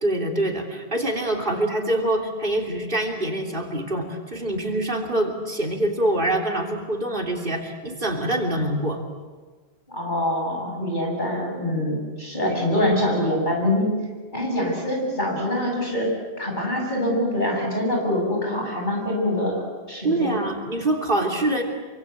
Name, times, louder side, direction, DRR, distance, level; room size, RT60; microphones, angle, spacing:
voice 1, 0.0-9.0 12.4-12.5 20.0-21.6, right 1 dB, 55° right, 2 dB, 3.4 m, -25 dB
voice 2, 9.9-13.9 14.3-16.1 16.4-19.6 19.9-20.4, left 1 dB, 45° left, 0 dB, 8.0 m, -24 dB
28.0 x 24.5 x 8.3 m, 1.4 s
omnidirectional pair, 1.1 m